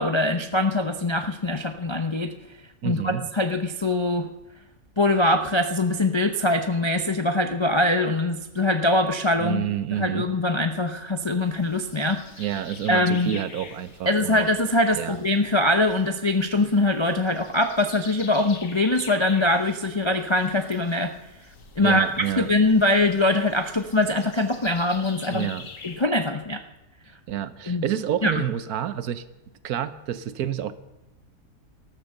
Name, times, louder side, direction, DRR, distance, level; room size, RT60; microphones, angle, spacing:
voice 1, 0.0-2.3 2.8-4.3 5.0-9.7 10.0-12.2 12.9-13.3 14.1-21.1 21.8-25.5 25.8-26.6 27.7-27.9 28.2-28.3, left 2 dB, 45° left, 6 dB, 0.3 m, -23 dB
voice 2, 2.8-3.2 9.4-10.3 12.4-14.4 14.9-15.2 21.8-22.5 25.3-25.7 27.3-29.2 29.6-30.7, right 10 dB, 65° right, 14 dB, 1.2 m, -28 dB
sound 1, 11.4-26.0, left 5 dB, 85° left, 2.4 m, -46 dB
14.0 x 13.0 x 6.6 m, 0.98 s
omnidirectional pair, 1.8 m